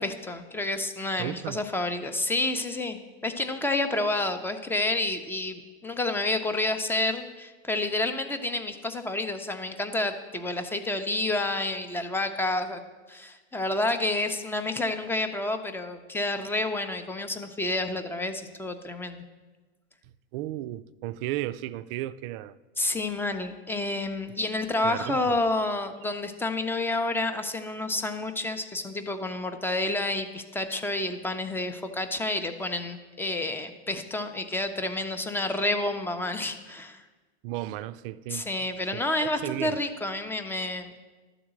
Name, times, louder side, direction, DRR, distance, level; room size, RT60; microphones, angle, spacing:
voice 1, 0.0-12.8 13.1-19.2 22.8-37.0 38.3-41.0, left 2 dB, 5° left, 0.6 m, -29 dB
voice 2, 1.2-1.6 20.3-22.6 24.8-25.4 37.4-38.5 38.9-39.8, right 15 dB, 55° right, 0.5 m, -34 dB
11.5 x 4.0 x 7.5 m
hypercardioid pair, 115°, 34 cm